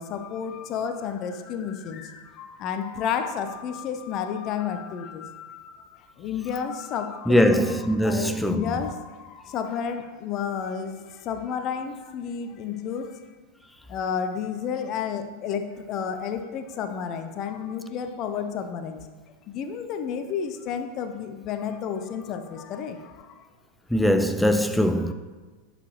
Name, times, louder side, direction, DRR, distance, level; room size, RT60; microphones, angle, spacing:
voice 1, 0.0-13.2 13.9-19.1 19.5-23.3 24.9-25.1, left 7 dB, 35° left, 0.8 m, -31 dB
voice 2, 7.3-8.6 23.9-25.1, equal, 5° left, 0.4 m, -21 dB
10.5 x 7.0 x 3.2 m
figure-of-eight pair, 90°, 0 cm